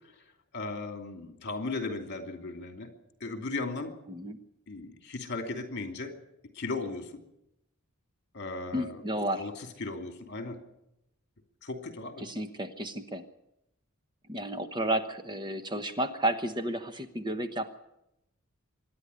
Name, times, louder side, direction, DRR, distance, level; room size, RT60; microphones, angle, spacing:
voice 1, 0.5-2.9 3.2-3.9 4.7-6.1 6.5-7.2 8.3-9.0 9.4-9.5 9.8-10.6 11.6-12.2, left 3 dB, 55° left, 5 dB, 2.8 m, -36 dB
voice 2, 4.1-4.4 8.7-9.5 12.2-13.2 14.3-17.8, right 1 dB, 20° right, 8 dB, 1.1 m, -32 dB
25.0 x 11.0 x 9.7 m, 0.85 s
head